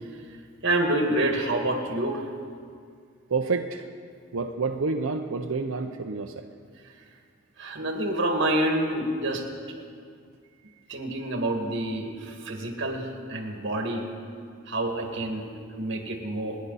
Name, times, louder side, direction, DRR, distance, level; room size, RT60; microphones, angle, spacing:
voice 1, 0.6-2.2 7.6-9.4 10.9-14.0 14.7-16.6, right 1 dB, 60° right, 2 dB, 2.0 m, -27 dB
voice 2, 3.3-3.8 4.3-6.3, right 4 dB, 90° right, 3 dB, 0.7 m, -28 dB
29.5 x 10.5 x 4.1 m, 2.2 s
head